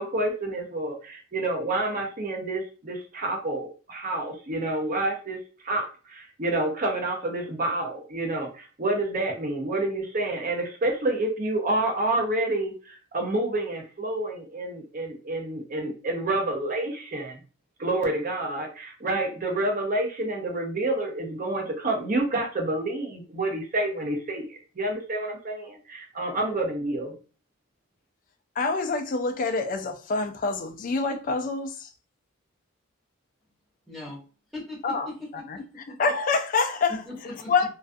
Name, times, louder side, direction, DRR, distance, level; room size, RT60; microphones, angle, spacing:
voice 1, 0.0-5.4 5.6-17.4 17.8-27.1, right 2 dB, 40° right, 0.6 m, -28 dB
voice 2, 28.6-31.9 34.8-35.1 36.0-37.0 37.5-37.7, left 4 dB, 40° left, 0.3 m, -26 dB
voice 3, 33.9-34.2 34.5-36.0 36.9-37.5, left 1 dB, ahead, 0.8 m, -39 dB
2.3 x 2.2 x 2.5 m
head